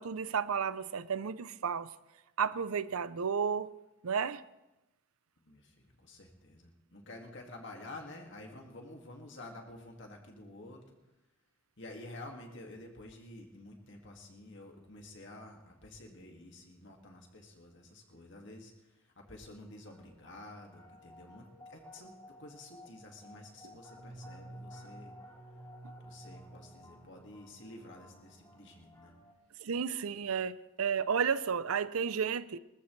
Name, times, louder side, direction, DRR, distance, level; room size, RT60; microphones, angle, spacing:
voice 1, 0.0-1.9 2.4-3.7 4.0-4.4 29.6-32.6, right 6 dB, 85° right, 0.6 m, -32 dB
voice 2, 5.4-11.0 11.8-22.1 22.4-25.1 26.0-29.2, left 2 dB, 55° left, 2.2 m, -50 dB
sound 1, 19.4-29.3, equal, 20° left, 3.0 m, -53 dB
23.5 x 14.0 x 3.3 m
head